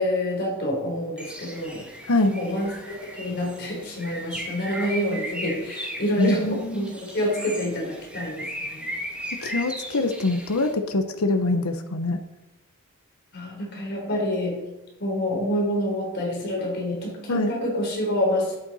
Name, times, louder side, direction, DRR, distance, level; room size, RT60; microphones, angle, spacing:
voice 1, 0.0-1.9 2.3-8.9 13.3-14.6 15.0-18.6, left 1 dB, 50° left, -1 dB, 3.9 m, -27 dB
Bird, 1.2-10.7, equal, 5° right, 1.8 m, -37 dB
voice 2, 6.2-6.9 9.4-12.2 17.3-17.5, left 2 dB, 90° left, 7 dB, 0.9 m, -24 dB
12.5 x 9.0 x 4.2 m, 1.0 s
head